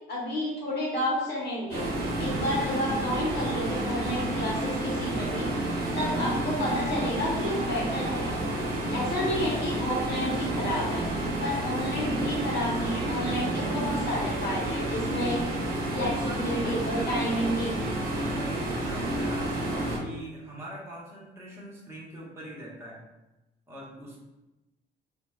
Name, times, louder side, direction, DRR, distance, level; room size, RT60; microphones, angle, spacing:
voice 1, 0.0-1.8 2.2-5.5 5.9-8.3 8.9-11.0 11.4-15.4 15.9-17.7, left 1 dB, 55° left, -4 dB, 1.3 m, -31 dB
sound 1, 1.7-20.0, right 1 dB, 50° right, 1.2 m, -30 dB
voice 2, 15.9-23.0 23.7-24.2, right 1 dB, 10° right, -6 dB, 1.3 m, -43 dB
3.9 x 2.7 x 2.4 m, 1.0 s
cardioid pair, 90°, 20 cm